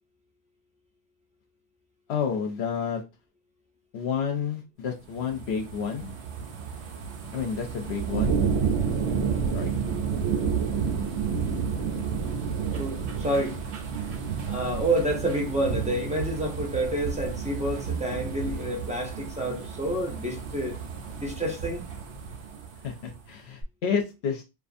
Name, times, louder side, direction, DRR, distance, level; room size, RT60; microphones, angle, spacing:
voice 1, 2.1-3.0 3.9-6.1 7.3-8.3 9.0-9.1 9.5-9.7 22.8-24.4, left 6 dB, 70° left, 0.8 m, -30 dB
sound 1, 5.0-23.2 23.6-23.7, right 6 dB, 70° right, 0.9 m, -31 dB
voice 2, 12.7-13.6 14.4-20.8 21.2-21.8, right 1 dB, 10° right, 0.4 m, -29 dB
2.5 x 2.4 x 2.5 m
omnidirectional pair, 1.2 m